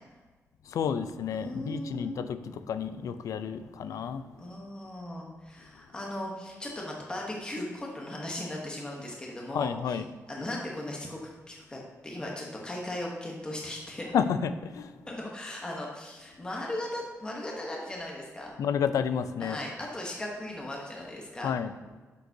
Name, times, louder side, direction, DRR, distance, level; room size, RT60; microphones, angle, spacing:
voice 1, 0.7-4.3 9.5-10.1 14.1-14.9 18.6-19.6 21.4-21.7, left 7 dB, 90° left, 11 dB, 0.4 m, -30 dB
voice 2, 1.3-2.2 4.4-10.0 10.3-11.2 11.5-14.0 15.1-18.5 19.4-21.5, left 1 dB, 15° left, -2 dB, 1.0 m, -37 dB
9.2 x 6.5 x 2.7 m, 1.3 s
wide cardioid pair, 175°, 6 cm